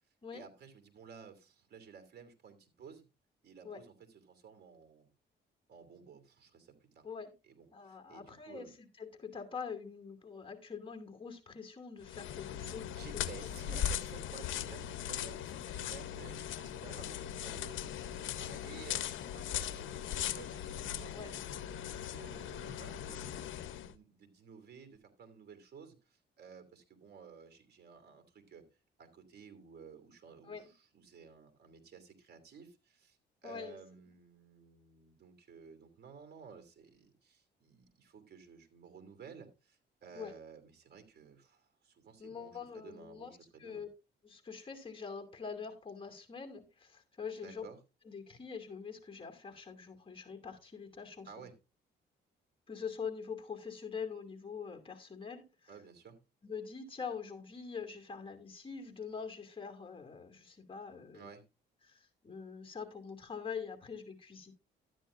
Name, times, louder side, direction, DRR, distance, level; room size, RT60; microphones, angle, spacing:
voice 1, 0.3-3.0 3.4-5.1 5.7-7.1 7.4-8.8 12.9-28.6 29.0-43.8 47.4-47.8 51.2-51.5 55.7-56.2 61.1-61.4, right 6 dB, 55° right, 2.7 m, -54 dB
voice 2, 7.7-13.2 21.1-21.4 30.4-30.7 33.4-33.8 40.1-40.3 42.2-43.9 44.2-47.7 48.1-51.4 52.7-55.7 56.4-61.3 61.8-64.5, left 6 dB, 25° left, 2.5 m, -44 dB
sound 1, 12.0-23.9, left 10 dB, 75° left, 0.9 m, -39 dB
12.5 x 9.7 x 2.6 m
cardioid pair, 90°, 20 cm